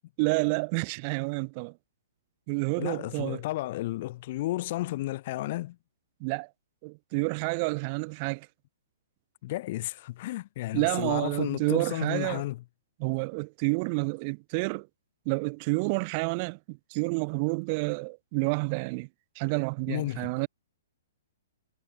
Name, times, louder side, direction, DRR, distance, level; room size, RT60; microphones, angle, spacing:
voice 1, 0.2-1.7 2.5-3.4 6.2-6.5 6.8-8.5 10.7-12.4 13.0-14.9 15.3-19.1 19.4-20.5, right 31 dB, 40° right, 1.8 m, -29 dB
voice 2, 2.8-5.8 9.4-12.6 19.9-20.3, left 16 dB, 50° left, 1.8 m, -33 dB
hypercardioid pair, 125°, 0 cm